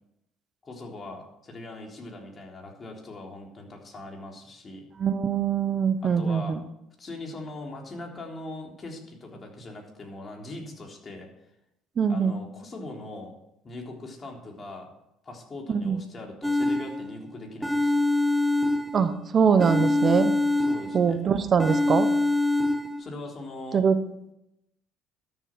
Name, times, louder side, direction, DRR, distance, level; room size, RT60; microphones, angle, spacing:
voice 1, 0.6-4.8 6.0-6.6 7.0-11.3 12.1-13.3 13.6-14.9 15.2-18.0 20.6-21.2 23.0-23.8, left 2 dB, 35° left, 1 dB, 3.6 m, -40 dB
voice 2, 5.0-6.6 12.0-12.4 15.7-16.0 18.9-20.3 20.9-22.1 23.7-24.0, right 6 dB, 45° right, 10 dB, 0.9 m, -23 dB
sound 1, 16.4-17.2 17.6-19.2 19.6-21.2 21.6-23.0, left 2 dB, 5° right, 1.0 m, -25 dB
12.5 x 7.3 x 6.1 m, 0.84 s
hypercardioid pair, 70°, 0 cm